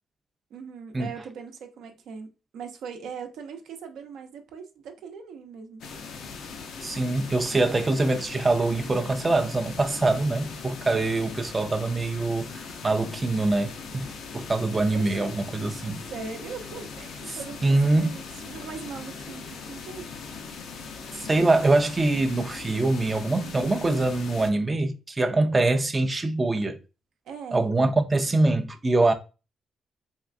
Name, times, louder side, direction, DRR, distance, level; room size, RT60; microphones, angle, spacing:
voice 1, 0.5-2.3 2.5-5.9 14.9-15.3 16.1-20.0 27.3-27.7, right 6 dB, 85° right, 0.6 m, -40 dB
sound 1, 5.8-24.5, left 5 dB, 80° left, 0.6 m, -40 dB
voice 2, 6.8-16.0 17.3-18.1 21.1-26.8 27.5-29.1, right 2 dB, 25° right, 0.4 m, -24 dB
3.5 x 3.2 x 2.5 m
cardioid pair, 105°, 0 cm